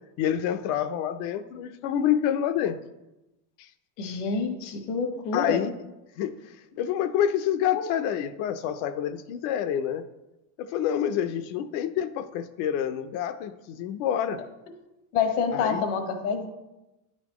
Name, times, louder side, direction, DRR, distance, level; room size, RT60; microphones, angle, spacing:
voice 1, 0.2-2.8 3.6-3.7 5.3-5.7 6.2-6.3 6.8-10.0 10.7-14.4 15.5-15.8, left 10 dB, 70° left, 11 dB, 0.6 m, -27 dB
voice 2, 4.0-5.6 7.7-7.8 15.1-16.5, left 5 dB, 85° left, 5 dB, 1.2 m, -27 dB
9.8 x 4.2 x 3.0 m, 0.98 s
supercardioid pair, 135°, 45 cm